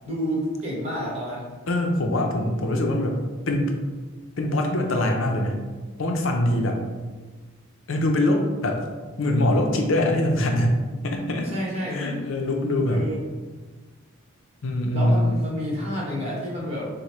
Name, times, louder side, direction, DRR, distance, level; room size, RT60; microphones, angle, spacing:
voice 1, 0.0-1.5 11.4-12.3 12.9-13.2 14.9-16.8, equal, 30° right, -5 dB, 1.3 m, -29 dB
voice 2, 1.7-3.2 3.5-3.7 4.4-5.6 6.0-6.8 7.9-8.8 9.2-11.5 11.9-13.0 14.6-15.3, left 1 dB, 70° left, 2 dB, 0.6 m, -23 dB
6.4 x 2.2 x 3.2 m, 1.3 s
head